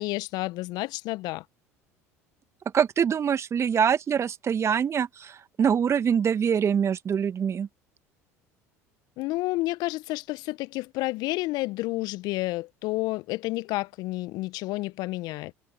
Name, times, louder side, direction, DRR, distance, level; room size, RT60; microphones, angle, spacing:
voice 1, 0.0-1.4 9.2-15.5, left 20 dB, 60° left, 1.3 m, -30 dB
voice 2, 2.7-7.7, right 7 dB, 35° right, 1.6 m, -24 dB
hypercardioid pair, 65°, 8 cm